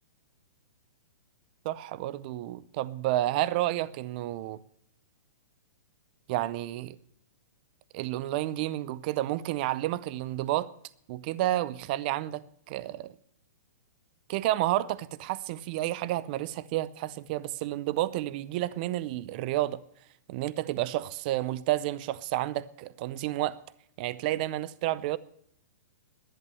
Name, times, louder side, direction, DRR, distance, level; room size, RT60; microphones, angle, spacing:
voice 1, 1.6-4.6 6.3-7.0 7.9-10.7 11.1-13.1 14.3-19.8 20.3-23.6 24.0-25.2, right 15 dB, 30° right, 0.5 m, -30 dB
11.0 x 10.5 x 6.8 m
hypercardioid pair, 165°, 10 cm